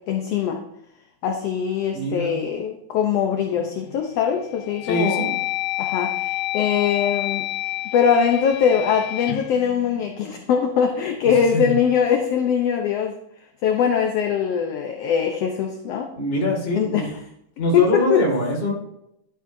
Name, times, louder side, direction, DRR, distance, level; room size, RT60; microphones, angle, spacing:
voice 1, 0.1-0.6 1.2-5.3 5.8-7.5 7.9-13.1 13.6-16.1 16.7-17.1 17.7-18.2, left 7 dB, 70° left, 4 dB, 1.7 m, -22 dB
voice 2, 1.9-2.3 4.8-5.3 11.5-11.7 16.2-17.0 17.6-18.7, equal, 20° left, -1 dB, 2.1 m, -23 dB
sound 1, 3.6-4.0 4.5-10.7, left 17 dB, 90° left, 2.0 m, -29 dB
11.5 x 9.2 x 2.7 m, 0.79 s
omnidirectional pair, 3.4 m